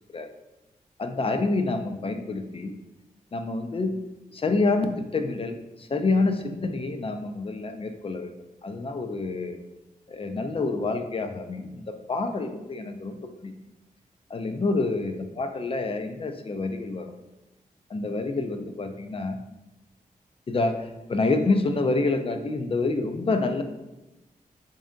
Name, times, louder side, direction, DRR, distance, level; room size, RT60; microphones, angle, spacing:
voice 1, 1.0-2.7 3.3-3.9 4.3-8.3 8.6-9.6 10.1-13.1 13.4-13.5 14.3-17.1 17.9-19.4 20.5-23.6, left 3 dB, 40° left, 6 dB, 0.4 m, -27 dB
3.4 x 2.7 x 3.6 m, 0.98 s
cardioid pair, 60°, 15 cm